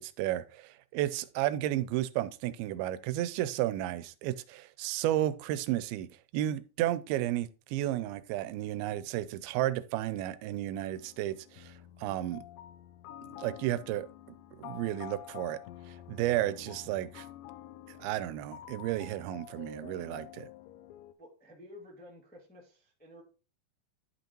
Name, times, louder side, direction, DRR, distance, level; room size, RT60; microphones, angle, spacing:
voice 1, 0.0-6.1 6.3-11.7 12.0-12.4 13.4-14.1 14.6-15.6 16.1-17.3 18.0-20.5, right 14 dB, 85° right, 2.4 m, -32 dB
sound 1, 10.7-21.1, left 12 dB, 80° left, 2.0 m, -49 dB
voice 2, 21.2-23.2, left 1 dB, 10° left, 0.5 m, -52 dB
11.5 x 5.3 x 3.0 m
omnidirectional pair, 4.3 m